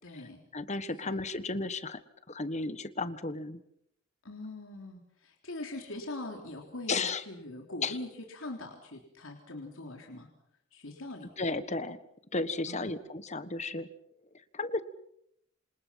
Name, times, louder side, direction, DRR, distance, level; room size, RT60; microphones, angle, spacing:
voice 1, 0.0-0.4 1.0-1.2 4.2-10.3 10.7-11.3 12.7-12.9, left 2 dB, 80° left, 2 dB, 3.6 m, -42 dB
voice 2, 0.5-2.0 2.3-3.6 6.9-7.2 7.8-8.0 11.4-12.0 12.3-13.9 14.5-14.8, left 3 dB, 35° left, 13 dB, 1.4 m, -33 dB
28.0 x 27.5 x 5.9 m, 0.73 s
head